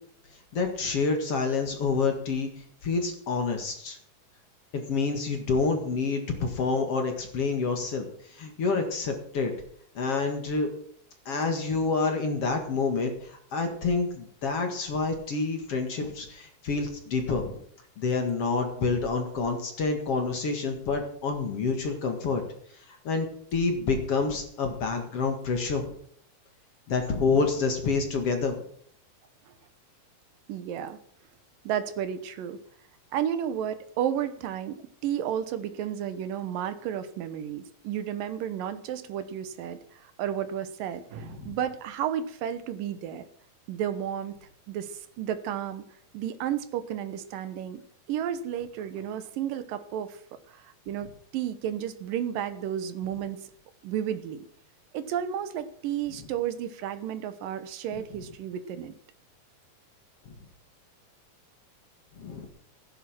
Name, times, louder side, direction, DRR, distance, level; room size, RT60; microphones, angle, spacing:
voice 1, 0.5-2.5 2.8-4.0 4.7-8.0 8.3-9.5 9.9-10.7 11.3-17.6 18.0-22.4 23.0-25.9 26.9-28.6 41.3-41.5 62.2-62.5, left 4 dB, 50° left, 4 dB, 2.5 m, -28 dB
voice 2, 30.5-31.0 31.6-32.6 33.1-43.2 43.7-45.8 46.1-47.8 48.1-50.2 50.5-53.4 53.8-54.5 54.9-58.9, right 9 dB, 80° right, 11 dB, 2.7 m, -32 dB
15.5 x 10.0 x 6.0 m, 0.63 s
omnidirectional pair, 4.0 m